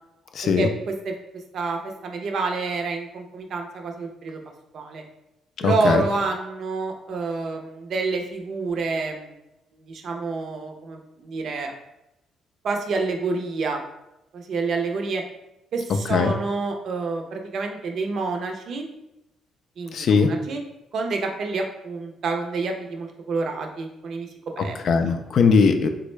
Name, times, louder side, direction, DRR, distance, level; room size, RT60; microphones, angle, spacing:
voice 1, 0.3-0.7 5.6-6.0 15.9-16.4 19.9-20.3 24.6-25.9, left 5 dB, 65° left, 7 dB, 0.3 m, -20 dB
voice 2, 1.5-4.4 4.7-5.0 5.6-9.3 9.7-11.7 12.6-13.8 14.3-15.2 15.7-18.9 19.8-20.6 20.9-24.3 24.6-24.8 25.0-25.1, right 3 dB, 65° right, 3 dB, 0.5 m, -28 dB
3.5 x 2.1 x 3.1 m, 0.89 s
cardioid pair, 90°, 0 cm